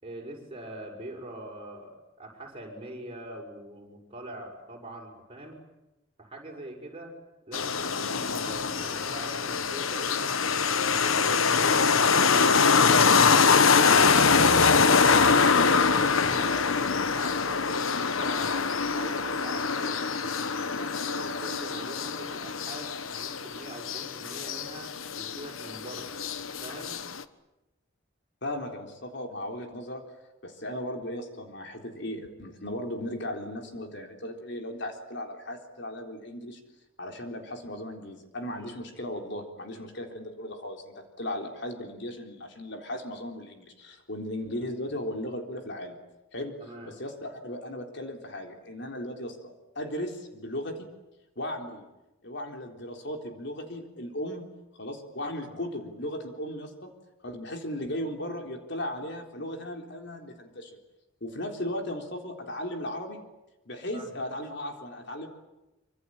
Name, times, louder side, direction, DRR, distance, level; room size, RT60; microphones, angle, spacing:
voice 1, 0.0-5.6 6.2-7.1 7.4-12.8 13.6-20.0 20.8-26.2 26.6-27.0 38.6-38.8 46.6-46.9 55.5-55.6 63.9-64.1, right 1 dB, 30° right, 1 dB, 6.8 m, -43 dB
sound 1, 7.5-27.2, left 5 dB, 90° left, 1.3 m, -24 dB
voice 2, 28.4-30.0 30.4-36.6 37.0-46.0 46.3-46.6 46.8-50.9 51.4-51.9 52.2-54.5 54.8-56.9 57.2-60.8 61.2-63.2 63.7-65.3, left 1 dB, 60° left, 3 dB, 4.0 m, -36 dB
26.0 x 25.5 x 8.9 m, 0.96 s
head